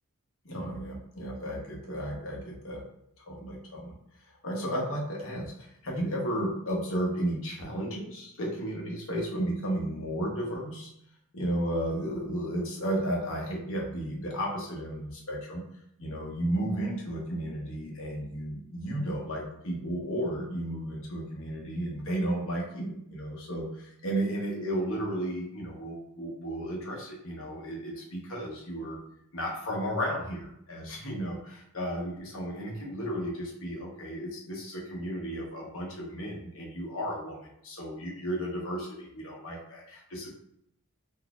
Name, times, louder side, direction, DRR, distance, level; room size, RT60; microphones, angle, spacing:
voice 1, 0.4-2.8 3.2-3.9 4.4-10.9 11.3-15.6 16.0-29.0 29.3-40.3, right 1 dB, 65° left, -2 dB, 1.1 m, -33 dB
3.9 x 2.7 x 2.4 m, 0.74 s
head